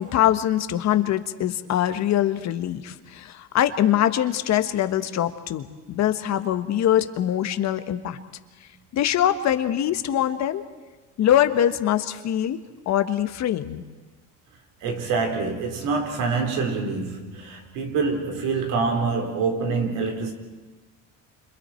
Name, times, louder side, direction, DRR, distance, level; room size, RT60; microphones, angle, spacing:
voice 1, 0.0-8.2 8.9-10.6 11.2-12.6 12.8-13.8, left 11 dB, 55° left, 1.4 m, -23 dB
voice 2, 14.8-20.3, right 4 dB, 70° right, 4.3 m, -26 dB
30.0 x 27.0 x 4.5 m
cardioid pair, 120°, 34 cm